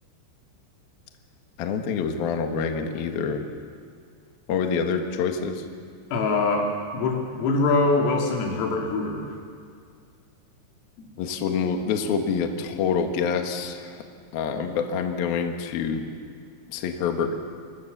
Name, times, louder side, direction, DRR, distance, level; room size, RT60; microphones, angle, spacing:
voice 1, 1.6-3.4 4.5-5.6 11.2-14.0 14.3-16.0 16.7-17.3, left 6 dB, 60° left, 4 dB, 2.9 m, -26 dB
voice 2, 6.1-9.3 11.0-11.1, left 3 dB, 85° left, 0 dB, 5.4 m, -24 dB
28.5 x 23.5 x 6.8 m, 2.2 s
omnidirectional pair, 5.9 m